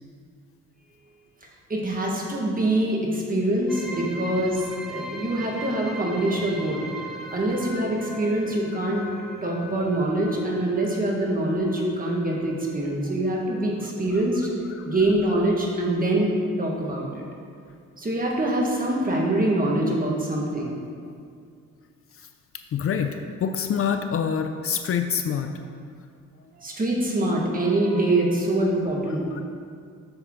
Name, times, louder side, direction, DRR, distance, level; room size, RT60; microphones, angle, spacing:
voice 1, 1.7-6.8 7.3-9.0 9.4-14.5 14.8-16.3 16.6-17.2 18.0-20.8 26.6-29.3, right 1 dB, 30° right, -2 dB, 1.7 m, -24 dB
sound 1, 3.7-13.0, right 1 dB, ahead, 1.1 m, -40 dB
voice 2, 22.7-25.5 29.1-29.4, left 7 dB, 50° left, 7 dB, 0.5 m, -27 dB
7.8 x 7.0 x 3.8 m, 2.2 s
cardioid pair, 90°, 30 cm